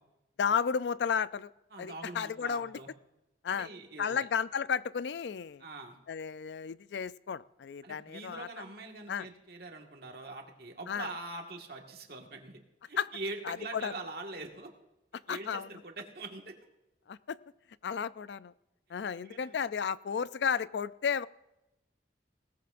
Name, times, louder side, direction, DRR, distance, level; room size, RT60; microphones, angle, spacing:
voice 1, 0.4-1.5 1.8-2.8 3.4-3.7 4.0-5.6 6.1-8.5 9.1-9.3 10.9-11.1 13.0-13.1 13.4-13.9 15.3-15.7 17.1-17.4 17.8-18.5 18.9-21.3, left 7 dB, 75° left, 17 dB, 0.4 m, -33 dB
voice 2, 1.7-2.9 3.5-4.3 5.6-6.0 7.8-12.6 12.9-14.7 15.3-16.6 19.1-19.6, right 2 dB, 60° right, 2 dB, 1.7 m, -43 dB
20.5 x 18.0 x 2.6 m, 0.93 s
head